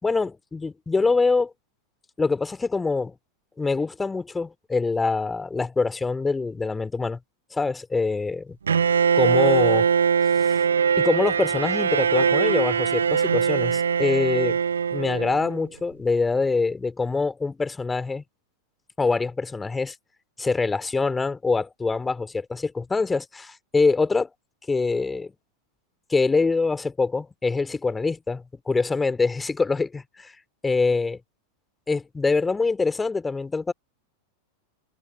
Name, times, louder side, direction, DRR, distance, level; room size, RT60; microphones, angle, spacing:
voice 1, 0.0-1.5 2.2-3.1 3.6-7.2 7.5-8.4 9.2-9.9 11.0-14.6 14.9-18.2 19.0-19.9 20.4-24.3 24.7-25.3 26.1-30.3 30.6-31.2 31.9-33.7, left 4 dB, 10° left, 3.5 m, -24 dB
Bowed string instrument, 8.7-15.6, right 7 dB, 70° right, 0.7 m, -22 dB
figure-of-eight pair, 90°, 0 cm